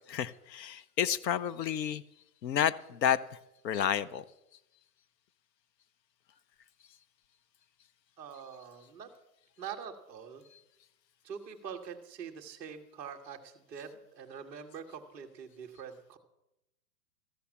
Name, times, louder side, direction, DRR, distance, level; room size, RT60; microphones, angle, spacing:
voice 1, 0.1-2.0 2.4-3.4 3.6-4.2 10.5-10.6, left 9 dB, 90° left, 17 dB, 0.8 m, -30 dB
voice 2, 8.2-9.1 9.6-10.4 11.2-16.2, right 7 dB, 5° right, -5 dB, 0.4 m, -44 dB
14.0 x 8.6 x 7.0 m, 0.90 s
hypercardioid pair, 150°, 48 cm